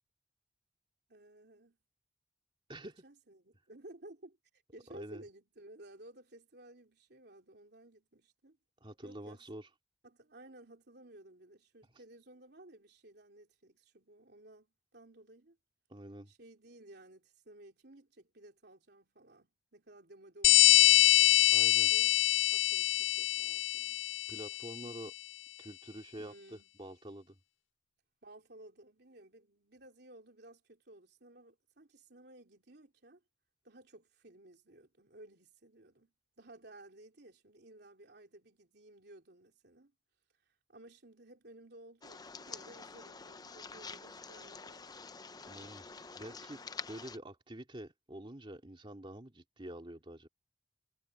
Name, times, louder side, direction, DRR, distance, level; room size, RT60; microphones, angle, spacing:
voice 1, 1.1-1.8 2.8-4.4 4.7-8.6 9.0-9.5 10.0-15.6 16.3-21.4 21.9-22.2 22.5-24.0 24.8-25.0 26.2-26.7 28.2-33.2 33.6-39.9 40.7-45.1, right 1 dB, 60° right, 3.4 m, -56 dB
voice 2, 4.9-5.2 8.8-9.7 15.9-16.3 21.5-21.9 24.3-25.1 25.6-27.4 45.5-45.9 46.2-46.6 46.9-50.3, right 1 dB, 30° right, 2.5 m, -47 dB
sound 1, 20.4-24.7, left 16 dB, 85° left, 0.3 m, -25 dB
sound 2, 42.0-47.2, left 4 dB, 20° left, 0.7 m, -47 dB
head